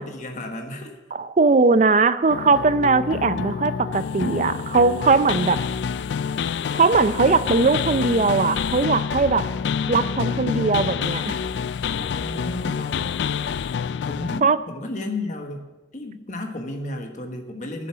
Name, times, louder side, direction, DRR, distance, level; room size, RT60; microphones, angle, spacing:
voice 1, 0.0-0.9 3.1-3.2 11.9-13.0 14.1-15.7 15.9-17.9, left 2 dB, 45° left, 3 dB, 1.3 m, -33 dB
voice 2, 1.1-5.6 6.7-9.5 9.9-11.4 14.4-14.6, right 4 dB, 40° right, 14 dB, 0.4 m, -19 dB
sound 1, 2.3-14.4, left 6 dB, 75° left, 0.3 m, -27 dB
10.5 x 6.8 x 7.6 m, 1.1 s
head